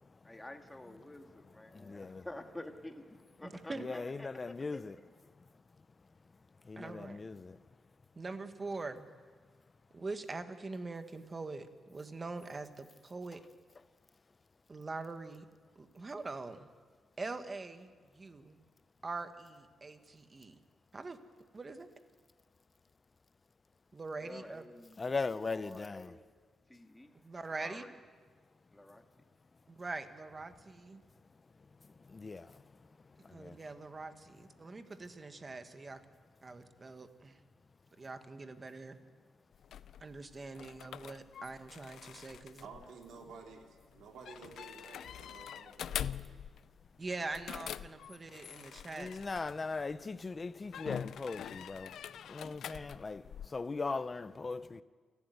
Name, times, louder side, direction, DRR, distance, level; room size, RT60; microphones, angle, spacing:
voice 1, 0.2-5.3 24.2-26.2 26.7-27.2 27.6-28.0 28.7-29.0, left 1 dB, 10° left, 1.8 m, -50 dB
voice 2, 1.7-2.2 3.7-5.0 6.7-7.6 25.0-26.1 32.1-32.5 33.3-33.6 48.9-51.9 52.3-53.2 53.5-54.8, left 4 dB, 25° left, 0.7 m, -39 dB
voice 3, 3.4-3.9 6.8-7.2 8.1-9.1 9.9-13.4 14.7-15.5 15.7-16.7 17.2-18.6 19.0-20.6 20.9-21.2 21.5-21.9 23.9-24.6 27.2-27.8 29.7-31.0 33.3-36.0 36.4-37.4 38.0-39.0 40.0-42.7 47.0-49.1, right 3 dB, 25° right, 1.4 m, -43 dB
sound 1, 39.5-50.0 50.7-53.5, left 9 dB, 75° left, 0.5 m, -45 dB
voice 4, 42.6-46.5, right 5 dB, 80° right, 2.9 m, -52 dB
29.0 x 12.0 x 9.3 m
cardioid pair, 130°, 0 cm